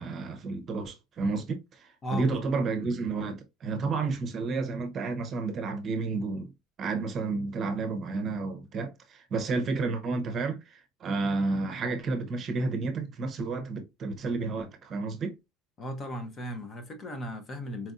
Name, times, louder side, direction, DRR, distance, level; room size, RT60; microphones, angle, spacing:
voice 1, 0.0-6.5 6.8-15.3, right 3 dB, 35° right, 0.7 m, -31 dB
voice 2, 2.0-2.6 15.8-17.9, equal, 25° left, 0.8 m, -36 dB
4.4 x 2.6 x 2.4 m
cardioid pair, 150°, 0 cm